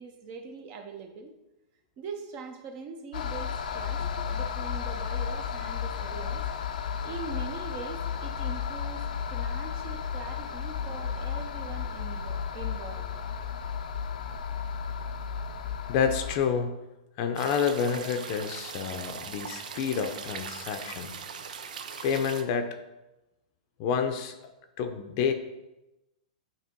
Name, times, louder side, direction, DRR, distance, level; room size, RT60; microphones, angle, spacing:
voice 1, 0.0-1.3 2.0-6.4 7.0-9.0 9.3-13.1, right 5 dB, 35° right, 5 dB, 0.8 m, -42 dB
sound 1, 3.1-16.4, left 7 dB, 80° left, 0.6 m, -33 dB
voice 2, 15.9-16.8 17.2-21.1 22.0-22.8 23.8-24.4 24.8-25.3, left 6 dB, 40° left, 7 dB, 0.6 m, -29 dB
sound 2, 17.4-22.4, right 6 dB, 85° right, 0.7 m, -40 dB
8.6 x 3.0 x 4.5 m, 0.99 s
hypercardioid pair, 150°, 4 cm